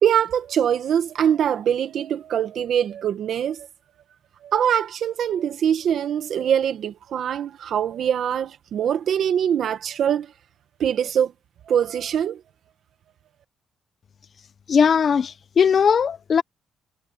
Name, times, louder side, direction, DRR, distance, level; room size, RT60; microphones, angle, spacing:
voice 1, 0.0-3.7 4.4-10.3 10.8-11.3 11.7-12.4, right 9 dB, 65° right, 1.5 m, -23 dB
voice 2, 14.7-16.4, left 7 dB, 50° left, 0.7 m, -19 dB
cardioid pair, 90°, 0 cm